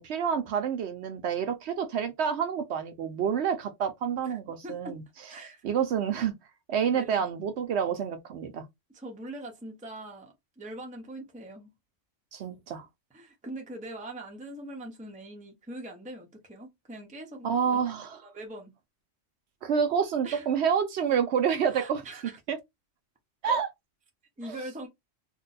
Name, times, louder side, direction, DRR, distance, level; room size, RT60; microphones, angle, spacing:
voice 1, 0.0-5.0 5.6-6.4 6.7-8.7 12.3-12.9 17.4-18.2 19.6-22.0 22.5-22.6 23.4-23.7 24.4-24.6, right 7 dB, 70° right, 0.8 m, -28 dB
voice 2, 4.2-5.0 5.3-5.6 6.9-7.3 8.9-11.7 13.1-18.7 20.2-20.5 21.7-22.4 24.4-24.9, right 1 dB, 10° right, 0.6 m, -42 dB
2.6 x 2.1 x 3.9 m
omnidirectional pair, 1.3 m